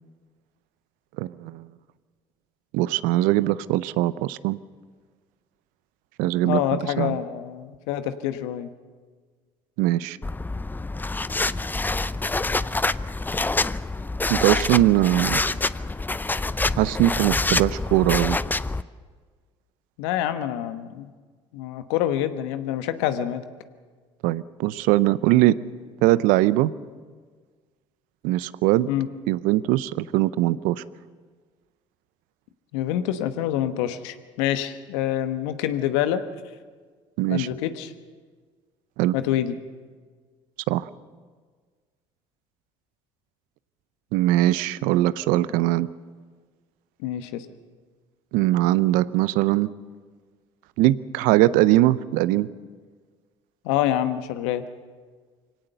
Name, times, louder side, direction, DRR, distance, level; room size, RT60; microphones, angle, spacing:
voice 1, 1.2-1.7 2.7-4.6 6.2-7.2 9.8-10.2 14.3-15.5 16.8-18.4 24.2-25.6 26.0-26.7 28.2-28.9 29.3-30.8 37.2-37.5 39.0-39.1 40.7-40.9 44.1-45.9 48.3-49.7 50.8-52.5, right 16 dB, 70° right, 18 dB, 0.6 m, -21 dB
voice 2, 6.4-8.7 20.0-21.1 21.5-23.4 28.9-29.1 32.7-36.2 37.3-37.9 39.1-39.6 47.0-47.5 53.6-54.6, left 11 dB, 75° left, 10 dB, 1.2 m, -26 dB
sound 1, 10.2-18.8, left 3 dB, 10° left, 0.6 m, -26 dB
24.0 x 17.5 x 6.8 m, 1.5 s
hypercardioid pair, 60°, 15 cm